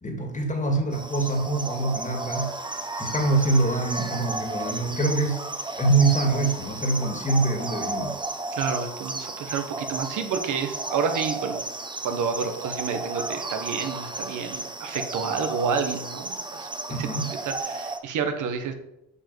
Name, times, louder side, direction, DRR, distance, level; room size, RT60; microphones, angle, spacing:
voice 1, 0.0-2.5 3.0-5.4 5.8-8.2 16.9-17.3, right 2 dB, 25° left, 2.1 m, -24 dB
Lokelani Ambience, 0.9-18.0, right 2 dB, 15° right, 0.9 m, -33 dB
voice 2, 8.5-11.6 12.0-17.1 17.4-18.7, right 6 dB, 80° right, 1.3 m, -29 dB
7.1 x 5.4 x 6.8 m
cardioid pair, 90°, 30 cm